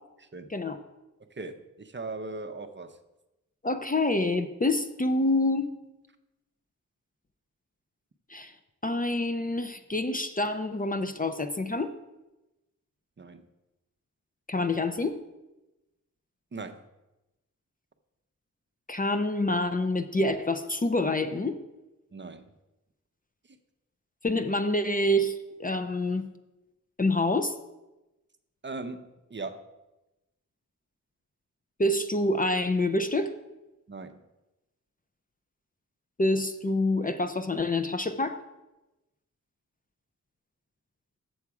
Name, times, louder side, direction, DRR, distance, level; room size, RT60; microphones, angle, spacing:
voice 1, 0.2-0.5 1.2-3.0 13.2-13.5 16.5-16.8 22.1-22.5 23.4-23.6 28.6-29.7 33.9-34.2, right 3 dB, 35° right, 7 dB, 0.6 m, -39 dB
voice 2, 3.6-5.7 8.3-8.5 8.8-11.9 14.5-15.2 18.9-21.6 24.2-26.3 27.0-27.5 31.8-33.3 36.2-38.4, left 2 dB, 25° left, 8 dB, 0.5 m, -27 dB
7.1 x 7.0 x 4.7 m, 1.0 s
wide cardioid pair, 75°, 33 cm